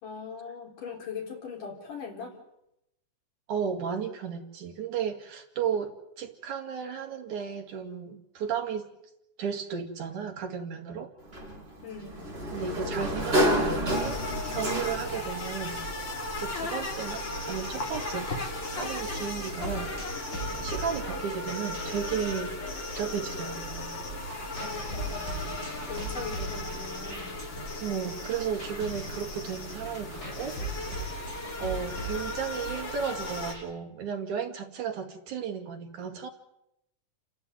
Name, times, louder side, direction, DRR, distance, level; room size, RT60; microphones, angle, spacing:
voice 1, 0.0-2.4 11.8-12.3 24.6-25.6 25.9-27.3, left 5 dB, 75° left, 0 dB, 5.5 m, -40 dB
voice 2, 3.5-8.9 9.4-11.1 12.5-14.2 14.5-15.8 16.3-18.3 18.7-22.5 23.0-23.9 27.8-31.1 31.6-36.3, right 7 dB, 65° right, 4 dB, 3.4 m, -34 dB
Sliding door, 11.3-15.3, equal, 15° right, 4.8 m, -29 dB
sound 1, 13.9-33.5, left 1 dB, 35° left, 3.3 m, -36 dB
sound 2, 19.6-24.0 24.3-33.6, right 1 dB, 20° left, 6.7 m, -41 dB
30.0 x 11.0 x 9.2 m, 0.84 s
omnidirectional pair, 3.8 m